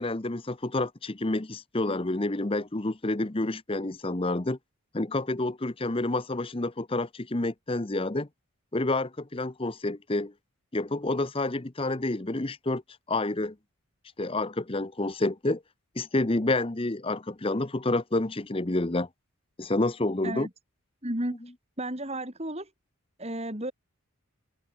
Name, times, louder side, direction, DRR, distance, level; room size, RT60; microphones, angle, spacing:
voice 1, 0.0-4.6 4.9-8.3 8.7-10.3 10.7-12.8 13.1-13.5 14.2-15.6 16.0-19.1 19.6-20.5, left 2 dB, 25° left, 0.8 m, -29 dB
voice 2, 21.0-21.4 21.8-22.7 23.2-23.7, right 1 dB, 30° right, 4.4 m, -32 dB
head